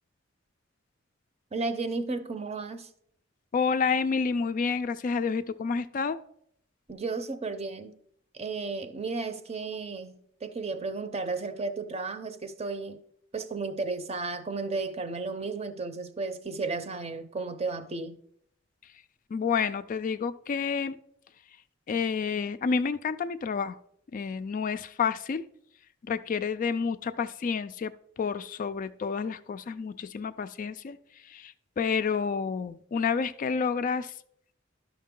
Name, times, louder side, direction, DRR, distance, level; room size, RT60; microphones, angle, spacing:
voice 1, 1.5-2.9 6.9-7.9 8.3-13.0 13.3-18.2, right 3 dB, 35° right, 0.6 m, -33 dB
voice 2, 3.5-6.2 19.3-21.0 21.9-23.8 24.1-25.4 26.0-27.9 28.2-31.0 31.2-34.1, left 5 dB, 45° left, 0.3 m, -29 dB
12.0 x 5.9 x 3.7 m
head